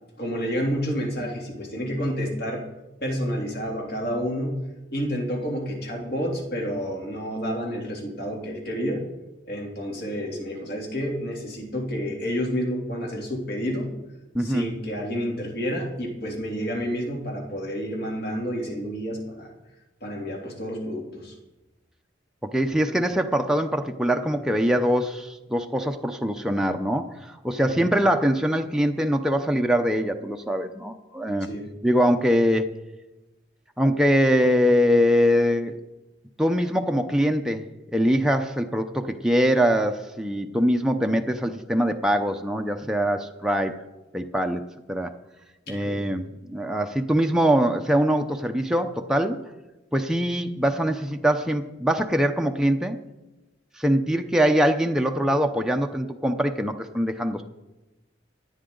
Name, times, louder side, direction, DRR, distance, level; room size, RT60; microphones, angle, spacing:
voice 1, 0.2-2.6 3.0-4.6 4.9-9.0 9.5-13.9 14.4-19.5 20.0-21.3 27.6-27.9 31.5-31.7 45.7-46.0, equal, 55° left, -1 dB, 3.0 m, -29 dB
voice 2, 14.3-14.7 22.4-31.5 31.8-32.7 33.8-35.8 36.4-37.7 37.9-43.8 44.1-44.6 44.9-45.1 45.7-49.4 49.9-53.0 53.8-57.4, equal, 5° right, 4 dB, 0.6 m, -23 dB
25.0 x 8.8 x 3.9 m, 1.1 s
head